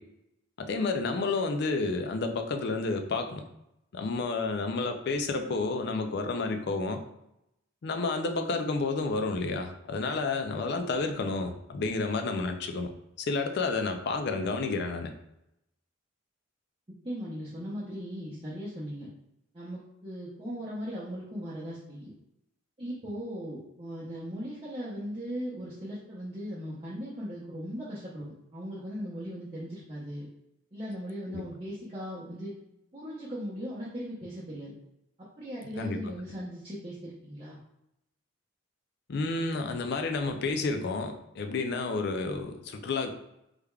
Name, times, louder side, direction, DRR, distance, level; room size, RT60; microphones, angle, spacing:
voice 1, 0.6-3.4 3.9-7.0 7.8-12.9 13.2-15.1 31.3-31.4 35.8-36.1 39.1-43.1, left 3 dB, 50° left, 6 dB, 0.4 m, -30 dB
voice 2, 17.0-19.1 19.5-22.1 22.8-30.3 30.7-32.5 32.9-34.7 35.4-37.6, equal, 25° right, -9 dB, 0.7 m, -38 dB
3.4 x 3.4 x 2.2 m, 0.84 s
head